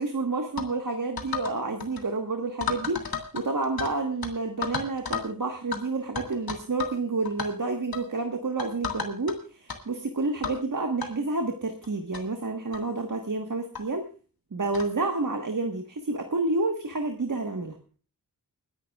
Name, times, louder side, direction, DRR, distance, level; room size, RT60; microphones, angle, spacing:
voice 1, 0.0-14.1 14.5-17.8, right 3 dB, 60° right, 4 dB, 1.5 m, -29 dB
sound 1, 0.6-0.7 1.2-1.5 1.8-2.0 2.6-3.9 4.2-4.3 4.6-5.3 5.7-5.8 6.2-7.0 7.2-7.5 7.9-8.1 8.6-9.3 9.7-9.8 10.4-10.6 11.0-11.1 11.8-11.9 12.1-12.2 12.7-12.9 13.7-13.8 14.7-14.9, left 6 dB, 90° left, 1.9 m, -33 dB
29.5 x 10.5 x 2.4 m, 0.37 s
wide cardioid pair, 75°, 35 cm